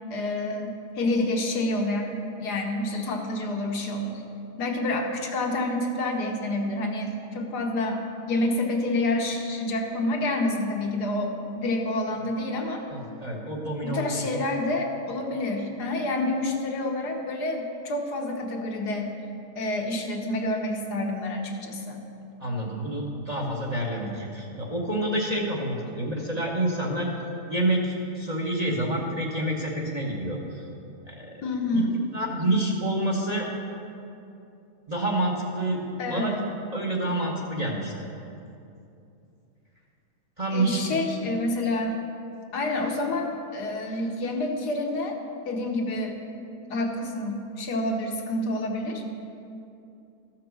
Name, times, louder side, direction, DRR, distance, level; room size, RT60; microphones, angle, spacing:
voice 1, 0.1-4.1 4.6-8.0 8.3-12.8 13.8-19.1 19.5-22.1 31.4-32.0 36.0-36.4 40.5-41.9 42.5-45.2 45.4-46.2 46.7-49.0, left 2 dB, 80° left, 1 dB, 1.7 m, -28 dB
voice 2, 12.9-14.2 22.4-27.1 27.5-30.7 31.0-31.4 31.7-31.8 32.1-33.5 34.9-35.8 36.1-36.4 36.7-38.1 40.4-41.0, right 1 dB, 30° right, -2 dB, 1.0 m, -28 dB
13.5 x 5.9 x 6.2 m, 2.6 s
omnidirectional pair, 1.7 m